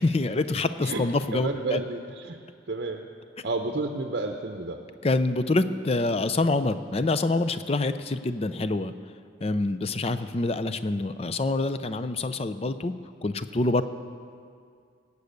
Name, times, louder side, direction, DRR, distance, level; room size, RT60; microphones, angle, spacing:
voice 1, 0.0-1.8 5.0-8.9 9.4-12.9 13.2-13.8, left 2 dB, 30° left, 11 dB, 0.5 m, -26 dB
voice 2, 1.3-2.4 2.7-3.1 3.4-4.8, right 2 dB, 55° right, 4 dB, 0.7 m, -31 dB
18.5 x 8.3 x 6.6 m, 2.2 s
head